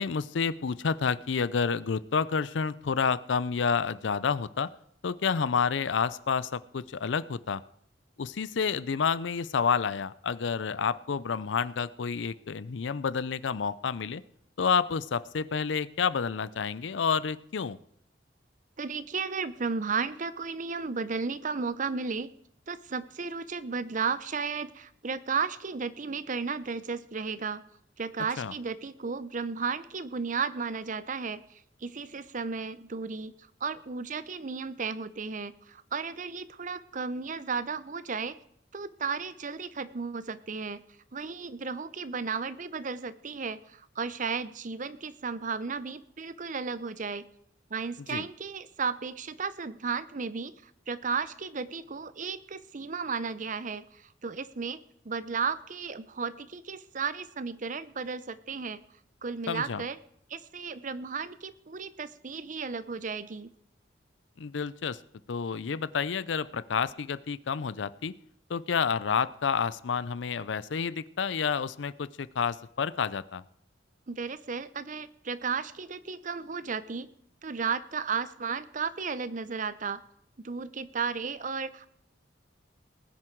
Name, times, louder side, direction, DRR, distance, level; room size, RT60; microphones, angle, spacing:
voice 1, 0.0-4.7 5.0-7.6 8.2-14.2 14.6-17.8 28.4-28.5 48.1-48.2 59.5-59.8 64.4-65.0 65.3-68.1 68.5-73.4, left 6 dB, 80° left, 18 dB, 0.5 m, -29 dB
voice 2, 18.8-22.3 22.7-27.6 28.0-33.3 33.6-38.4 38.7-40.8 41.1-47.3 47.7-58.8 59.2-60.0 60.3-63.5 74.1-77.1 77.4-80.0 80.4-81.9, right 5 dB, 45° right, 15 dB, 0.7 m, -34 dB
20.0 x 9.8 x 4.6 m, 0.70 s
head